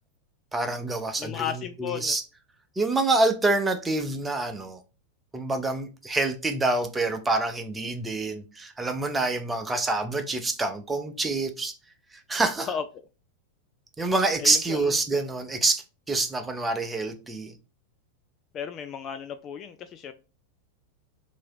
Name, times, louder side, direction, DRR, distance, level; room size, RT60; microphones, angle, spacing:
voice 1, 0.5-1.5 1.8-2.2 2.8-4.8 5.3-11.7 12.3-12.7 14.0-17.5, right 2 dB, 10° right, 0.6 m, -26 dB
voice 2, 1.2-2.1 12.6-12.8 14.4-14.9 18.5-20.1, left 7 dB, 30° left, 0.3 m, -34 dB
2.9 x 2.8 x 4.5 m
figure-of-eight pair, 90°, 0 cm